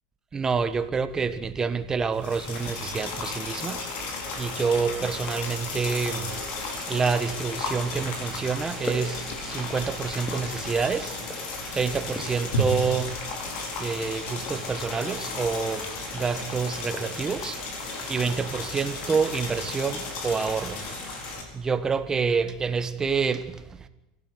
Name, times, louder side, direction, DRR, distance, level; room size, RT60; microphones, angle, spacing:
voice 1, 0.3-3.8 4.4-6.3 6.9-11.2 11.7-13.2 13.8-15.9 16.1-17.6 18.1-20.8 21.5-23.6, right 5 dB, 15° right, 1.3 m, -27 dB
sound 1, 2.1-21.4, left 4 dB, 50° left, 4.7 m, -35 dB
Chewing mastication, 3.9-14.0, right 1 dB, 85° left, 5.7 m, -38 dB
sound 2, 6.3-21.4, equal, 10° left, 2.7 m, -42 dB
23.5 x 16.5 x 6.9 m
supercardioid pair, 150°, 4 cm